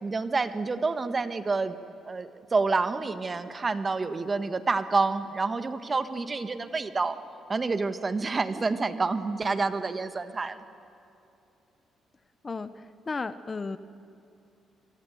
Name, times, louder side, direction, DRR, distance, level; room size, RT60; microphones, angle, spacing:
voice 1, 0.0-1.8 2.0-7.1 7.5-10.6, right 3 dB, 30° right, 10 dB, 1.5 m, -28 dB
voice 2, 12.4-13.8, left 4 dB, 30° left, 13 dB, 1.0 m, -34 dB
27.5 x 23.0 x 9.3 m, 2.8 s
cardioid pair, 90°, 0 cm